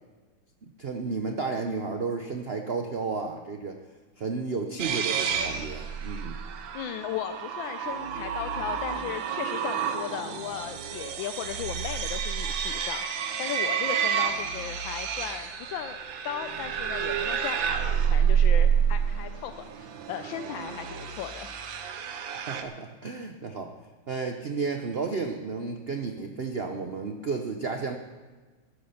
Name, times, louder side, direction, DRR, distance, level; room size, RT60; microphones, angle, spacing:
voice 1, 0.6-3.8 4.2-6.4 22.4-23.7 24.1-28.0, right 4 dB, 50° right, 5 dB, 0.8 m, -32 dB
sound 1, 4.8-22.6, right 8 dB, 85° right, 1.7 m, -29 dB
voice 2, 6.7-16.0 16.2-21.5, left 10 dB, 85° left, 8 dB, 1.4 m, -36 dB
13.5 x 12.0 x 5.8 m, 1.3 s
omnidirectional pair, 2.1 m